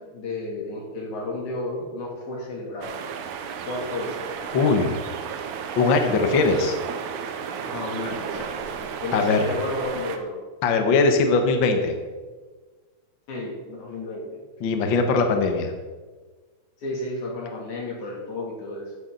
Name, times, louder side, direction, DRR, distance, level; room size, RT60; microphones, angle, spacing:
voice 1, 0.0-3.0 3.7-4.3 7.6-10.4 13.3-14.4 16.8-18.9, left 2 dB, 75° left, -2 dB, 4.2 m, -32 dB
sound 1, 2.8-10.2, right 7 dB, 90° right, 2.3 m, -33 dB
voice 2, 4.5-5.0 5.8-6.8 9.1-9.4 10.6-11.9 14.6-15.7, left 4 dB, 55° left, 5 dB, 1.4 m, -20 dB
13.5 x 10.5 x 3.9 m, 1.4 s
omnidirectional pair, 3.4 m